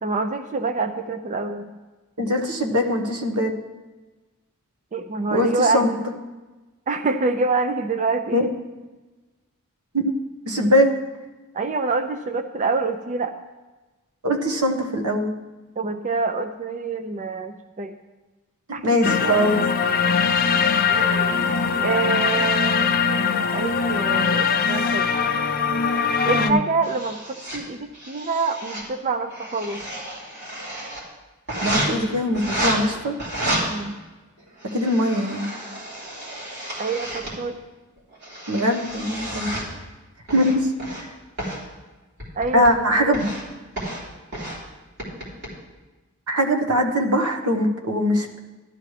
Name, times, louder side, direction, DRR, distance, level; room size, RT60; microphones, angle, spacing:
voice 1, 0.0-1.7 4.9-6.0 6.9-8.5 10.6-10.8 11.5-13.4 15.8-17.9 18.7-19.6 20.9-21.5 21.8-22.9 23.3-25.1 26.2-29.8 33.5-34.0 36.8-37.6 42.4-43.2, right 3 dB, 35° right, 8 dB, 0.5 m, -26 dB
voice 2, 2.2-3.5 5.3-5.9 8.3-8.4 9.9-10.1 10.4-10.9 14.2-15.3 18.8-19.6 26.4-26.6 31.6-33.1 34.7-35.5 38.5-39.6 40.3-40.7 42.5-43.3 46.3-48.4, equal, 80° right, 3 dB, 1.3 m, -21 dB
sound 1, 19.0-26.5, left 6 dB, 40° left, 0.6 m, -21 dB
sound 2, 26.8-27.6 27.9-28.8 29.2-31.0 31.5-31.9 32.3-32.7 33.2-33.6 34.4-37.4 38.0-39.7 40.3-41.0 41.4-41.6 42.2-42.7 43.1-43.4 43.8-44.0 44.3-44.6 45.0-45.5, right 1 dB, 50° right, 3.5 m, -31 dB
13.0 x 12.0 x 3.3 m, 1.2 s
head